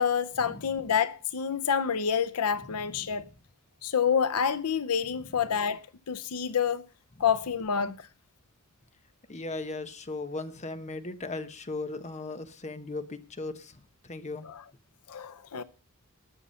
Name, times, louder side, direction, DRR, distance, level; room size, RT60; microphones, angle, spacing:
voice 1, 0.0-3.2 3.8-6.8 7.2-8.1 14.4-14.6 15.1-15.6, left 7 dB, 80° left, 0.7 m, -28 dB
voice 2, 2.7-3.1 9.3-14.5, left 3 dB, 30° left, 1.0 m, -37 dB
19.0 x 7.0 x 5.6 m
head